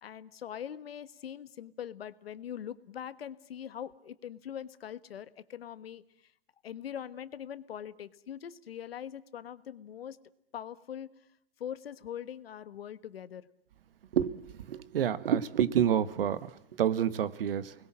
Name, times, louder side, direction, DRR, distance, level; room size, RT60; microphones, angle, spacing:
voice 1, 0.0-6.3 6.6-10.2 10.5-11.1 11.6-13.5, left 9 dB, 70° left, 14 dB, 1.4 m, -42 dB
voice 2, 14.1-17.7, right 9 dB, 65° right, 16 dB, 1.4 m, -28 dB
29.0 x 21.0 x 7.5 m, 0.73 s
hypercardioid pair, 140°, 31 cm